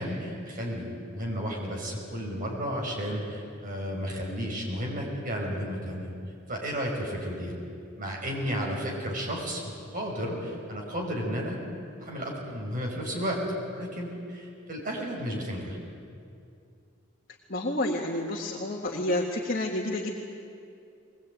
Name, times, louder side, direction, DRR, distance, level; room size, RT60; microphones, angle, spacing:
voice 1, 0.0-6.1 6.5-7.5 8.0-11.6 12.0-13.4 13.7-15.8, equal, 45° right, -1 dB, 5.4 m, -33 dB
voice 2, 17.5-20.1, left 1 dB, 45° left, -2 dB, 1.9 m, -29 dB
22.5 x 20.0 x 9.2 m, 2.5 s
head